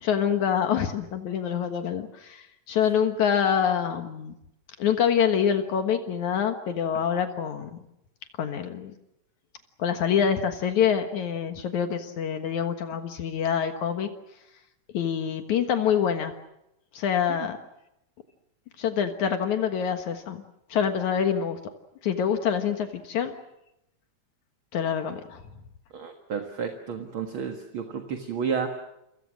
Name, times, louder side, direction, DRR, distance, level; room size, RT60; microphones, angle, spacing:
voice 1, 0.0-4.3 4.8-7.8 8.4-9.0 9.8-14.1 14.9-16.3 16.9-17.6 18.8-20.4 20.7-21.6 22.0-23.3 24.7-25.4, left 8 dB, 70° left, 7 dB, 2.8 m, -26 dB
voice 2, 25.9-28.7, right 6 dB, 45° right, 5 dB, 2.2 m, -31 dB
29.5 x 25.0 x 6.3 m, 0.84 s
omnidirectional pair, 3.5 m